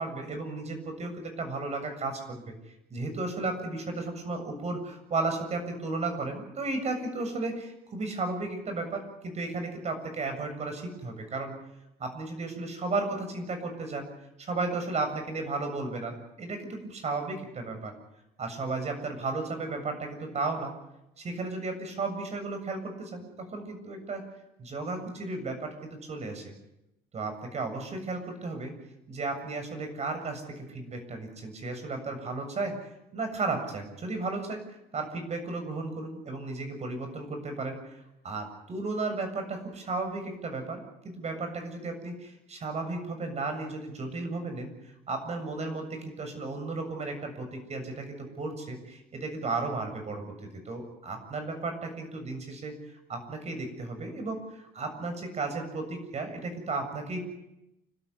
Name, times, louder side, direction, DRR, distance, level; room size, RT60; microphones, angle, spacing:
voice 1, 0.0-2.5 2.9-11.5 12.0-14.1 14.4-17.9 18.4-20.7 21.2-24.3 24.6-26.5 27.1-28.7 29.1-32.8 33.1-34.6 34.9-37.8 38.2-57.2, right 3 dB, 40° right, 6 dB, 7.4 m, -34 dB
29.5 x 13.0 x 9.8 m, 0.89 s
cardioid pair, 110°, 17 cm